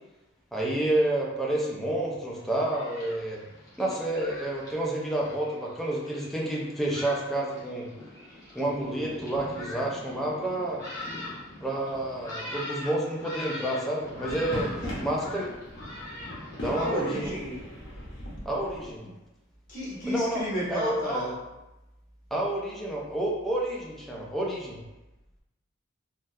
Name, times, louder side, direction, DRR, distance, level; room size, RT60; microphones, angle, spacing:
voice 1, 0.5-3.4 3.8-7.9 8.5-10.8 11.6-15.5 16.6-17.2 18.5-19.0 20.1-20.4 20.7-21.3 22.3-24.8, right 1 dB, ahead, -4 dB, 0.4 m, -29 dB
Thunderstorm, 2.3-17.1, left 2 dB, 20° left, 1.0 m, -42 dB
sound 1, 14.0-19.0, equal, 65° left, 0.9 m, -39 dB
voice 2, 14.8-15.5 16.7-17.7 19.0-19.1 19.7-21.3, equal, 45° left, -8 dB, 1.0 m, -33 dB
3.7 x 2.1 x 2.6 m, 0.99 s
head